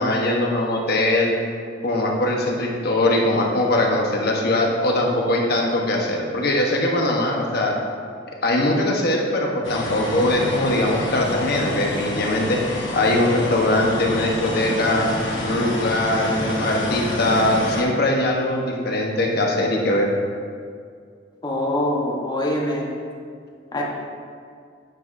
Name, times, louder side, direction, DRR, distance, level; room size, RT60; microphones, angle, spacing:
voice 1, 0.0-1.3 1.8-7.7 8.4-12.6 12.9-15.1 15.4-20.1, left 1 dB, 55° left, 0 dB, 1.1 m, -21 dB
sound 1, 9.6-17.8, left 1 dB, 85° left, 1.2 m, -28 dB
voice 2, 21.4-22.9 23.7-23.8, left 1 dB, 20° left, -2 dB, 1.1 m, -24 dB
9.2 x 7.5 x 2.6 m, 2.1 s
head